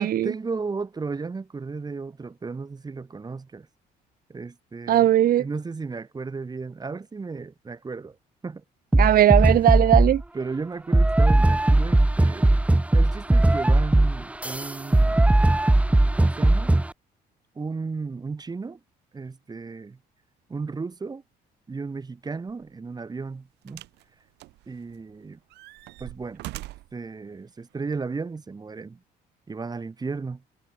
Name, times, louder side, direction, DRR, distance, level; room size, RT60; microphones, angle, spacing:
voice 1, 0.0-3.7 4.3-8.2 8.4-8.6 10.3-12.6 12.9-15.3 16.2-16.7 17.6-18.8 19.1-20.0 20.5-21.2 21.7-23.8 24.7-25.4 26.0-26.4 26.9-29.0 29.5-30.4, right 4 dB, 25° right, 4.0 m, -34 dB
voice 2, 4.9-5.4 8.9-10.2, right 12 dB, 60° right, 1.4 m, -18 dB
sound 1, 8.9-10.2 10.9-16.9, right 1 dB, 10° right, 1.1 m, -19 dB
sound 2, 22.5-22.7 23.7-24.0 24.4-25.1 25.5-27.0 27.9-28.0, right 18 dB, 85° right, 6.8 m, -41 dB
cardioid pair, 110°, 17 cm